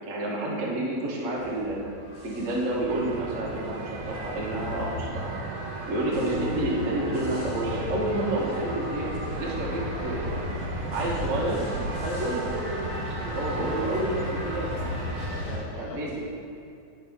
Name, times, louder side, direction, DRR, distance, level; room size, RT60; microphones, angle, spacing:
voice 1, 0.1-1.8 2.2-5.3 5.9-10.3 10.9-11.6 12.0-12.9 13.2-14.7 15.5-16.1, right 1 dB, 60° right, -4 dB, 0.8 m, -29 dB
sound 1, 1.4-15.6, left 2 dB, 50° left, 2.0 m, -35 dB
sound 2, 2.9-15.3, right 3 dB, 80° right, 2.1 m, -37 dB
voice 2, 14.6-16.3, left 2 dB, 75° left, -3 dB, 2.5 m, -42 dB
11.5 x 5.2 x 3.6 m, 2.6 s
omnidirectional pair, 3.5 m